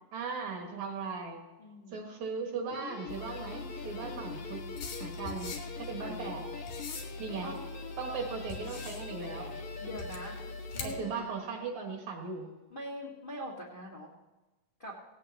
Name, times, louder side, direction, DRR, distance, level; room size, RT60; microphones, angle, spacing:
voice 1, 0.1-1.4 1.9-4.7 5.0-6.4 7.2-7.5 8.0-9.5 10.8-12.5, right 5 dB, 60° right, 2 dB, 2.8 m, -38 dB
voice 2, 1.6-2.0 3.9-4.3 6.0-6.5 7.4-7.6 9.8-10.4 10.7-11.1 12.7-14.1 14.8-15.0, equal, 40° left, -3 dB, 0.7 m, -43 dB
Guitar, 2.7-12.0, left 5 dB, 55° left, 1.8 m, -44 dB
sound 1, 3.1-11.0, left 3 dB, 75° left, 3.3 m, -42 dB
17.5 x 17.5 x 2.9 m, 1.1 s
omnidirectional pair, 3.9 m